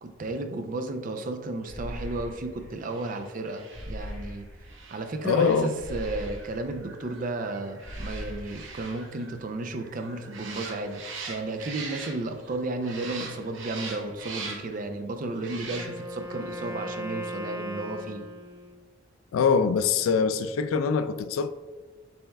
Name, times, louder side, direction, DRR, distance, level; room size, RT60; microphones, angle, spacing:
voice 1, 0.0-4.5 4.9-11.0 11.3-18.2, right 2 dB, 40° right, 0.4 m, -33 dB
sound 1, 1.7-2.8 3.7-4.8 5.8-6.9 7.8-8.9, equal, 5° left, 1.3 m, -39 dB
sound 2, 2.8-12.5 12.8-14.8 15.4-16.2 16.6-16.7, right 4 dB, 65° right, 0.8 m, -42 dB
voice 2, 5.2-5.7 19.3-21.5, left 5 dB, 85° left, 0.3 m, -23 dB
Wind instrument woodwind instrument, 15.6-18.9, equal, 10° right, 0.8 m, -38 dB
6.9 x 3.4 x 2.2 m
head